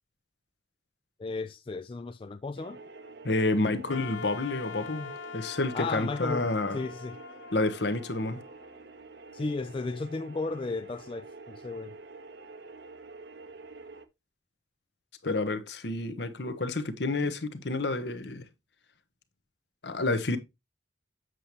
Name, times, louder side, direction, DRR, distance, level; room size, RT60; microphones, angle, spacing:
voice 1, 1.2-2.8 5.7-7.2 9.3-12.0, left 3 dB, 30° left, 0.3 m, -34 dB
sound 1, 2.6-14.1, right 3 dB, 60° right, 0.8 m, -48 dB
voice 2, 3.2-6.8 7.5-8.4 15.2-18.5 19.8-20.4, left 2 dB, 65° left, 1.0 m, -29 dB
Wind instrument woodwind instrument, 3.9-8.9, left 7 dB, 85° left, 0.6 m, -44 dB
7.8 x 6.7 x 2.9 m
head